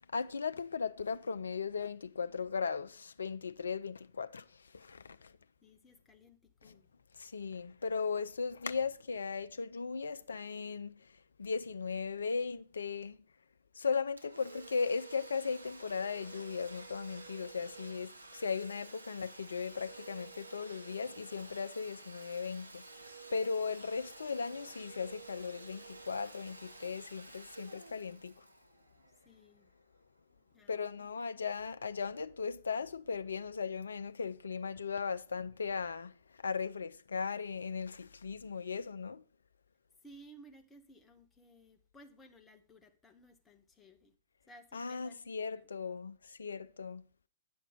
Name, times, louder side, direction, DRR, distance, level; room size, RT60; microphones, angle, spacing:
voice 1, 0.1-5.3 6.6-6.8 7.2-13.2 13.7-22.9 23.3-28.5 30.7-39.2 44.7-47.0, left 5 dB, 70° left, 0.5 m, -37 dB
voice 2, 5.6-6.9 29.2-29.7 30.5-31.4 40.0-44.1 44.5-45.7, right 1 dB, 15° left, 1.1 m, -59 dB
Domestic sounds home sounds, 14.2-29.6, right 3 dB, 85° right, 0.9 m, -52 dB
9.3 x 5.9 x 5.0 m
figure-of-eight pair, 105°, 0 cm